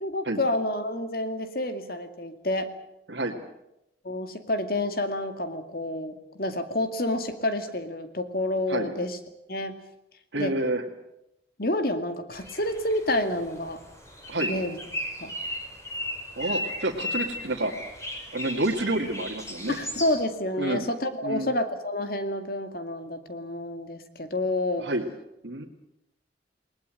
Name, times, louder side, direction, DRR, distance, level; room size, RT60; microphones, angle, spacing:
voice 1, 0.0-2.7 4.0-9.2 9.5-9.8 10.4-10.5 11.6-13.8 14.5-14.8 15.2-15.3 19.7-24.9, left 1 dB, 50° left, 8 dB, 2.3 m, -29 dB
voice 2, 10.3-10.8 14.3-14.5 16.4-17.7 18.3-19.8 20.6-20.8 21.2-21.5 24.8-25.0 25.4-25.7, right 2 dB, 75° right, -2 dB, 2.1 m, -28 dB
sound 1, 12.3-20.2, left 1 dB, 15° left, 5.5 m, -36 dB
21.0 x 20.0 x 8.9 m, 0.85 s
head